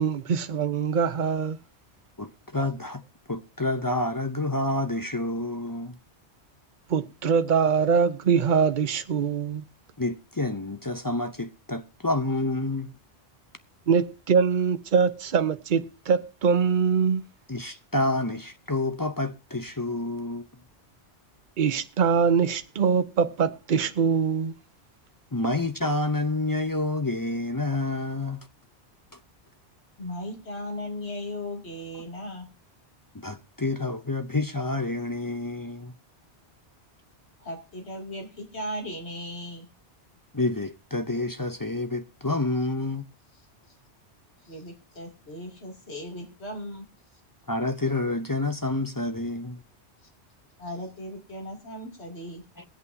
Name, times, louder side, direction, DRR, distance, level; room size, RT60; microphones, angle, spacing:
voice 1, 0.0-1.6 6.9-9.6 13.9-17.2 21.6-24.5, right 6 dB, 50° right, 0.9 m, -23 dB
voice 2, 2.2-3.0 3.3-6.0 10.0-12.9 17.5-20.5 25.3-28.4 33.1-35.9 40.3-43.0 47.5-49.6 52.6-52.7, left 2 dB, 25° left, 0.5 m, -28 dB
voice 3, 30.0-32.5 37.4-39.6 44.5-46.8 50.6-52.4, left 1 dB, 70° left, 3.0 m, -37 dB
21.5 x 8.2 x 2.7 m
omnidirectional pair, 1.1 m